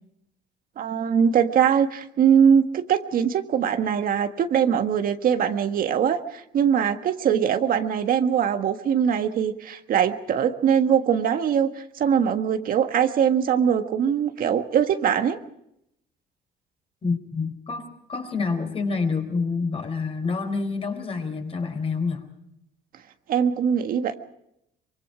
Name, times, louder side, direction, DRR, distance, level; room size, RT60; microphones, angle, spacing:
voice 1, 0.8-11.7 12.0-15.4 23.3-24.1, right 8 dB, 55° right, 7 dB, 1.5 m, -22 dB
voice 2, 17.0-22.3, left 4 dB, 35° left, 5 dB, 4.3 m, -27 dB
24.5 x 24.0 x 5.0 m, 0.78 s
cardioid pair, 110°, 17 cm